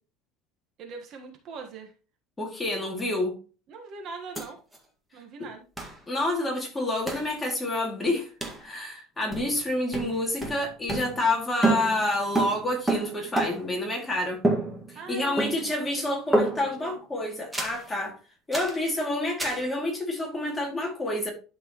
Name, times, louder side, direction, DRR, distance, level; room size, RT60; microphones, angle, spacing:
voice 1, 0.8-1.9 3.7-4.6 5.1-5.6 14.9-16.3 16.6-17.0, right 5 dB, 45° right, 1.3 m, -42 dB
voice 2, 2.4-3.4 6.1-8.3 8.6-14.4 14.9-18.1 18.5-21.3, left 1 dB, 10° left, 2.4 m, -28 dB
sound 1, 4.4-4.5 4.7-4.8 5.8-6.0 7.1-7.3 8.4-8.7 9.3-9.7 9.9-11.4 11.6-13.8 14.4-15.1 15.4-15.8 16.3-16.8 17.5-17.9 18.5-18.8 19.4-19.7, right 2 dB, 5° right, 1.8 m, -28 dB
12.0 x 4.6 x 3.0 m
cardioid pair, 150°, 0 cm